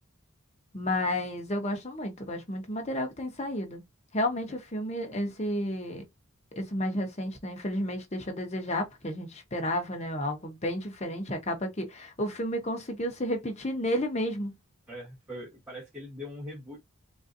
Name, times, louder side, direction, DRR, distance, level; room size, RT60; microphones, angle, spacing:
voice 1, 0.7-3.8 4.1-6.0 6.5-14.5, left 1 dB, 30° left, 0.9 m, -32 dB
voice 2, 14.9-16.8, equal, 5° right, 1.1 m, -41 dB
3.7 x 2.7 x 2.5 m
head